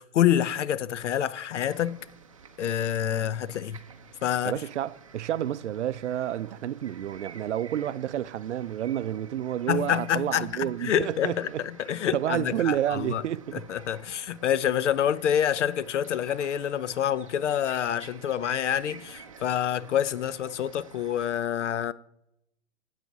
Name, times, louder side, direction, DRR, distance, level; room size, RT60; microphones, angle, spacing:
voice 1, 0.0-2.0 2.6-3.8 4.2-4.6 9.7-13.2 13.5-21.9, left 10 dB, 75° left, 0.6 m, -27 dB
sound 1, 1.6-21.3, right 6 dB, 30° right, 0.5 m, -50 dB
voice 2, 4.4-11.6 12.1-13.6, right 11 dB, 75° right, 0.5 m, -30 dB
10.5 x 8.4 x 4.1 m
hypercardioid pair, 175°, 36 cm